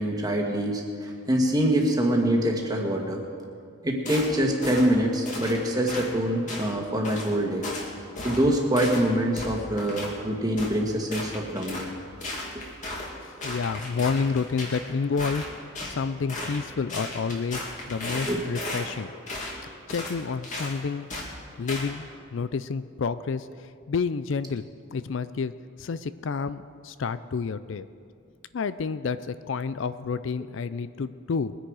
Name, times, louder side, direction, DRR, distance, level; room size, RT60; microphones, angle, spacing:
voice 1, 0.0-3.2 3.8-7.7 8.2-11.9 12.5-12.6 18.3-18.4, right 1 dB, 20° right, 0 dB, 1.7 m, -25 dB
sound 1, 4.1-4.3 4.6-4.9 5.3-5.6 5.9-6.1 6.5-6.7 7.0-7.3 7.6-7.9 8.2-8.4 8.8-9.0 9.4-10.1 10.6-10.7 11.1-11.9 12.2-13.1 13.4-14.8 15.2-15.9 16.3-16.6 16.9-18.9 19.3-19.5 19.9-20.2 20.4-20.7 21.1-21.3 21.7-21.9, left 2 dB, 35° left, 2.4 m, -35 dB
voice 2, 13.2-15.4 15.9-19.1 19.9-21.1 21.6-24.6 24.9-25.5 25.8-27.9 28.5-31.6, left 5 dB, 65° left, 14 dB, 0.4 m, -29 dB
21.5 x 10.0 x 4.8 m, 2.2 s
head